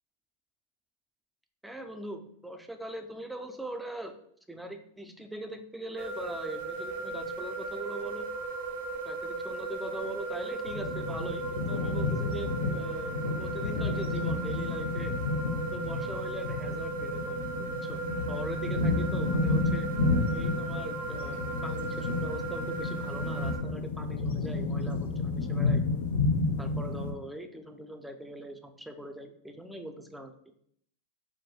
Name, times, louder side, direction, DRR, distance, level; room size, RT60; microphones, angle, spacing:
voice 1, 1.6-4.2 4.5-8.3 9.1-15.2 15.7-18.0 18.3-19.9 20.3-25.8 26.6-30.3, right 1 dB, 5° right, 6 dB, 0.3 m, -41 dB
sound 1, 6.0-23.6, right 3 dB, 70° right, 0.6 m, -37 dB
sound 2, 10.7-27.1, left 3 dB, 80° left, 0.4 m, -31 dB
2.6 x 2.2 x 3.0 m, 0.65 s
hypercardioid pair, 115°, 0 cm